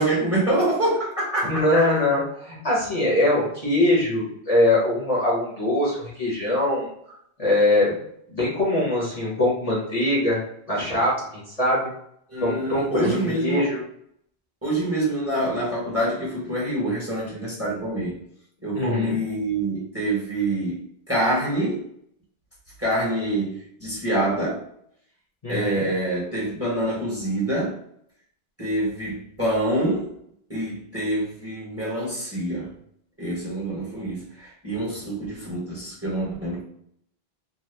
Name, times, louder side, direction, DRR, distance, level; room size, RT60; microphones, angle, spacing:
voice 1, 0.0-1.8 12.3-13.7 14.6-18.2 18.6-21.8 22.8-24.6 25.5-27.8 28.6-30.1 30.5-32.7 33.2-36.6, right 1 dB, 15° right, -6 dB, 1.0 m, -26 dB
voice 2, 1.5-6.9 7.4-8.0 8.3-10.4 10.7-11.9 12.4-13.8 18.7-19.2 25.4-25.9, left 1 dB, 40° left, -6 dB, 1.0 m, -22 dB
2.8 x 2.2 x 3.3 m, 0.69 s
omnidirectional pair, 1.1 m